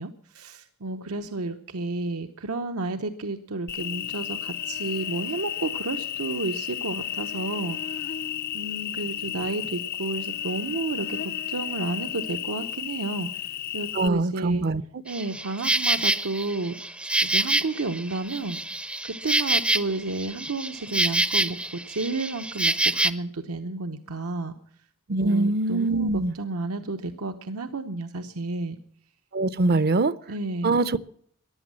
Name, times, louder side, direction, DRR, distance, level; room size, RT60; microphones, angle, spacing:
voice 1, 0.0-8.0 8.5-14.7 15.0-16.8 17.2-18.6 19.0-24.5 25.2-28.8 30.3-30.7, right 2 dB, 90° right, 0.9 m, -32 dB
Cricket, 3.7-14.1, left 10 dB, 45° left, 0.5 m, -33 dB
voice 2, 13.9-14.8 25.1-26.3 29.3-30.1 30.6-31.0, right 3 dB, 45° right, 0.6 m, -23 dB
Insect, 15.1-23.1, right 2 dB, 5° right, 0.5 m, -26 dB
14.5 x 11.5 x 7.4 m
head